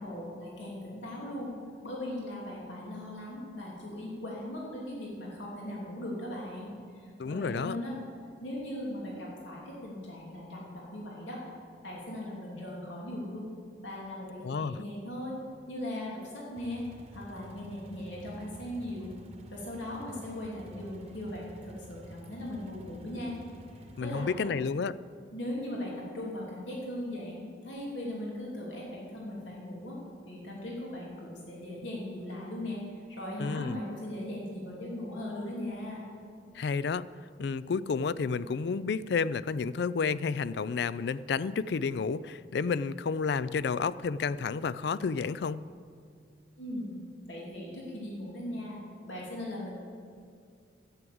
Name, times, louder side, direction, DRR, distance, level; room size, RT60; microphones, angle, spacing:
voice 1, 0.0-1.5 1.8-8.0 8.4-11.4 11.8-13.5 13.8-15.4 15.7-16.8 17.1-19.1 19.5-23.4 23.8-24.5 25.3-30.0 30.3-36.1 46.6-47.0 47.3-49.7, left 1 dB, 80° left, -4 dB, 3.0 m, -39 dB
voice 2, 7.2-7.8 14.4-14.8 24.0-25.0 33.4-33.8 36.5-37.0 37.4-45.7, left 5 dB, 60° left, 17 dB, 0.4 m, -31 dB
sound 1, 16.6-24.3, equal, 35° right, 1.0 m, -50 dB
11.0 x 9.2 x 7.8 m, 2.2 s
head